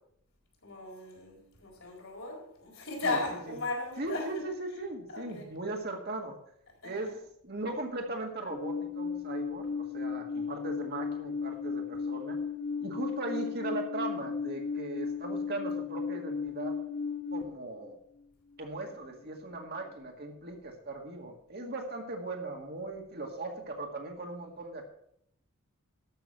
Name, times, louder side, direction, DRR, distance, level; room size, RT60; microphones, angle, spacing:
voice 1, 0.6-4.4 5.1-5.5 6.8-7.1, left 2 dB, 70° left, 4.5 m, -36 dB
voice 2, 4.0-6.4 6.8-7.2 7.4-12.4 12.8-16.7 17.3-18.0 18.6-24.9, right 2 dB, 45° right, 1.9 m, -38 dB
Alarm, 8.5-17.4, left 5 dB, 50° left, 1.9 m, -35 dB
13.0 x 6.2 x 6.0 m
head